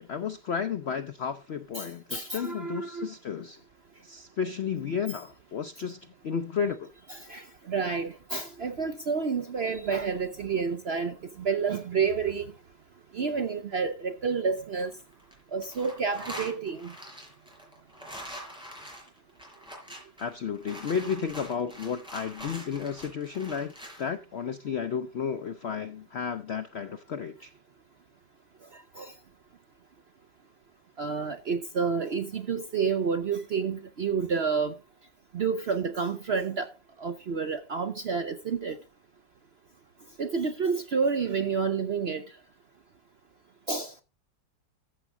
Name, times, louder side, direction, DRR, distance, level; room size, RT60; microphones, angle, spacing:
voice 1, 0.0-3.6 4.0-6.9 20.2-23.7 24.0-27.5, left 7 dB, 65° left, 0.6 m, -32 dB
voice 2, 1.7-3.1 7.1-12.5 13.1-14.9 15.5-16.9 29.0-29.1 31.0-34.8 35.3-36.7 37.0-38.8 40.2-42.2 43.7-43.9, right 5 dB, 55° right, 0.7 m, -29 dB
sound 1, 14.6-15.3 15.6-24.1, equal, 5° right, 4.9 m, -44 dB
14.0 x 7.2 x 3.7 m
omnidirectional pair, 1.8 m